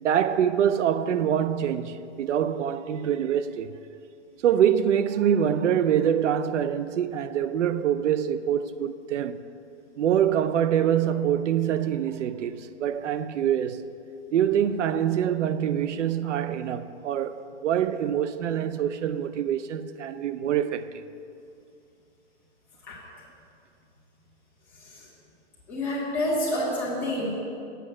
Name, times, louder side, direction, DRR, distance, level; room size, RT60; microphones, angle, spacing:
voice 1, 0.0-3.7 4.4-9.4 10.0-13.9 14.3-17.4 17.6-20.9, right 9 dB, 85° right, 0.5 m, -25 dB
voice 2, 25.7-27.4, left 1 dB, 5° left, 1.2 m, -28 dB
8.0 x 5.5 x 7.3 m
hypercardioid pair, 175°, 35 cm